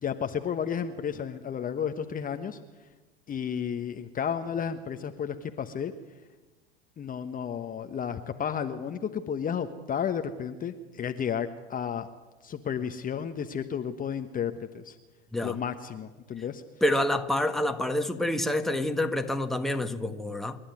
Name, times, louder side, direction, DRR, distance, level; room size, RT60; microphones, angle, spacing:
voice 1, 0.0-2.6 3.3-5.9 7.0-12.1 12.4-15.0 15.4-16.6, left 7 dB, 25° left, 1.2 m, -32 dB
voice 2, 16.8-20.6, left 1 dB, ahead, 1.4 m, -27 dB
27.5 x 11.5 x 9.5 m
hypercardioid pair, 90°, 35 cm